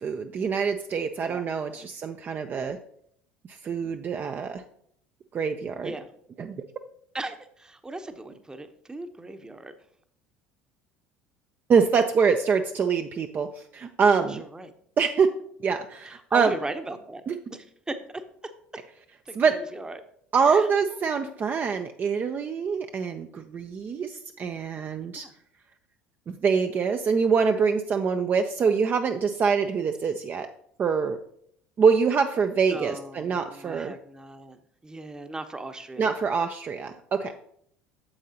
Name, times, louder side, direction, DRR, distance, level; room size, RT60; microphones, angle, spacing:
voice 1, 0.0-2.8 3.6-4.6 5.3-5.9 6.4-6.6 11.7-13.5 13.7-14.4 15.0-15.3 15.6-16.5 17.3-17.4 19.3-19.6 20.3-25.3 26.3-30.5 30.8-31.2 31.8-34.0 36.0-37.3, right 5 dB, 35° right, 6 dB, 0.5 m, -25 dB
voice 2, 1.2-1.8 5.8-6.1 7.1-9.7 14.2-14.7 16.0-17.2 17.5-18.2 19.3-20.0 20.4-20.7 25.1-25.3 32.7-36.1, right 2 dB, 15° right, 9 dB, 0.9 m, -38 dB
8.8 x 7.4 x 2.9 m, 0.67 s
hypercardioid pair, 70°, 5 cm